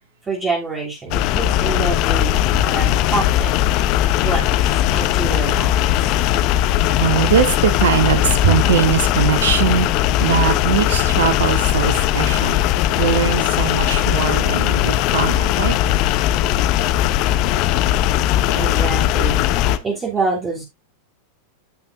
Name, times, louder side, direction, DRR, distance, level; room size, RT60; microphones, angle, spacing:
voice 1, 0.3-3.6 4.1-6.2 12.7-13.0 13.8-14.0 15.8-15.9 16.3-16.6 17.6-17.9 18.5-20.6, right 3 dB, 15° right, 3.4 m, -27 dB
sound 1, 1.1-19.8, left 12 dB, 40° left, 0.9 m, -18 dB
voice 2, 6.9-9.9 10.2-12.6 13.0-15.8 18.5-18.6, right 8 dB, 60° right, 1.6 m, -20 dB
14.5 x 5.9 x 2.7 m
figure-of-eight pair, 90°, 0 cm